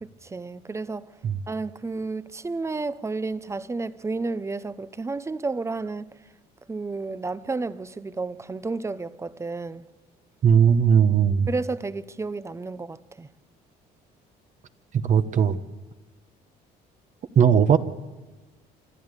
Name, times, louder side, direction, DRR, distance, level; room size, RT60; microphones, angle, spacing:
voice 1, 0.0-1.1 1.5-6.1 6.7-9.8 11.5-13.3, right 3 dB, 15° right, 0.8 m, -31 dB
voice 2, 10.4-11.5 14.9-15.6 17.3-17.8, right 7 dB, 50° right, 1.2 m, -18 dB
27.0 x 12.5 x 8.2 m
cardioid pair, 110°, 17 cm